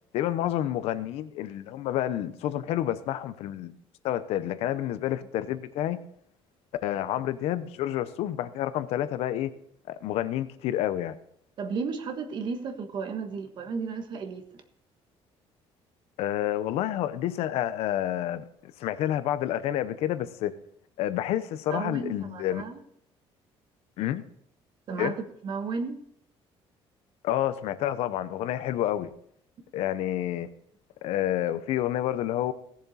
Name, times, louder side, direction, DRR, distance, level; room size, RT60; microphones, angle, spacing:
voice 1, 0.1-3.7 4.0-6.0 6.8-9.5 9.9-11.2 16.2-20.5 21.0-22.6 24.0-24.2 25.0-25.1 27.2-29.1 29.7-30.5 31.0-32.5, left 12 dB, 75° left, 13 dB, 0.8 m, -29 dB
voice 2, 11.6-14.4 21.7-22.8 24.9-26.0, right 5 dB, 45° right, 7 dB, 1.3 m, -33 dB
17.0 x 7.2 x 4.2 m, 0.69 s
cardioid pair, 150°, 10 cm